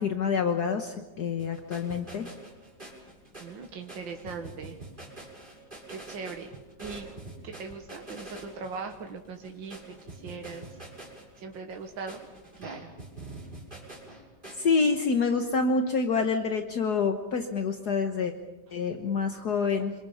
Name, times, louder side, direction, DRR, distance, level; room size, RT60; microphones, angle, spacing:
voice 1, 0.0-2.3 14.5-18.3 18.7-19.9, left 5 dB, 60° left, 5 dB, 1.8 m, -27 dB
sound 1, 1.4-14.6, right 2 dB, 25° right, 6.5 m, -45 dB
voice 2, 3.4-4.8 5.9-7.1 7.4-9.8 10.1-10.8 11.4-12.2 12.6-12.9, right 4 dB, 85° right, 3 dB, 2.2 m, -40 dB
27.5 x 26.0 x 5.7 m, 1.1 s
omnidirectional pair, 2.0 m